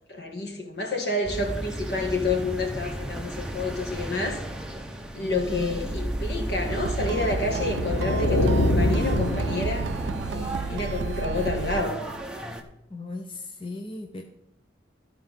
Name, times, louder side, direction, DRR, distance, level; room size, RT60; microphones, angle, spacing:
voice 1, 0.1-4.4 5.1-9.9 10.3-12.0, left 2 dB, 65° left, 1.7 m, -29 dB
sound 1, 1.2-12.6, right 1 dB, 5° right, 0.7 m, -34 dB
sound 2, 6.7-11.8, right 6 dB, 85° right, 0.3 m, -32 dB
sound 3, 7.5-10.4, left 1 dB, 80° left, 0.9 m, -25 dB
voice 2, 12.9-14.2, left 2 dB, 30° left, 0.6 m, -37 dB
13.0 x 4.5 x 5.6 m
head